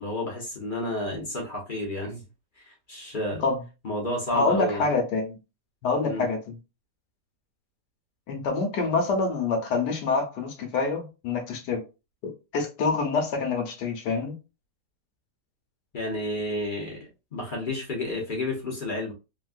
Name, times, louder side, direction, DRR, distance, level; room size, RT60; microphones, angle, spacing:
voice 1, 0.0-2.2 2.6-3.4 3.8-4.9 6.0-6.2 15.9-19.1, left 1 dB, 40° left, 0.8 m, -31 dB
voice 2, 4.3-5.4 5.8-6.6 8.3-11.8 12.5-14.3, left 4 dB, 75° left, 1.4 m, -26 dB
3.6 x 2.2 x 2.4 m
omnidirectional pair, 1.8 m